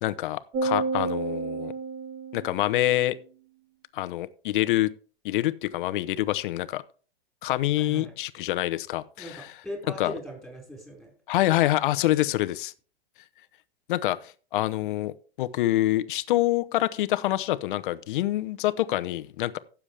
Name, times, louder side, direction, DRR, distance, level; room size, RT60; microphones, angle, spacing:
voice 1, 0.0-1.7 2.3-3.2 3.9-4.9 5.2-6.8 7.4-9.5 10.0-10.1 11.3-12.7 13.9-19.6, left 15 dB, 60° left, 0.9 m, -26 dB
sound 1, 0.5-3.1, right 3 dB, 40° right, 2.9 m, -31 dB
voice 2, 7.8-8.2 9.2-11.1, equal, ahead, 4.9 m, -39 dB
15.5 x 7.2 x 3.4 m
hypercardioid pair, 130°, 29 cm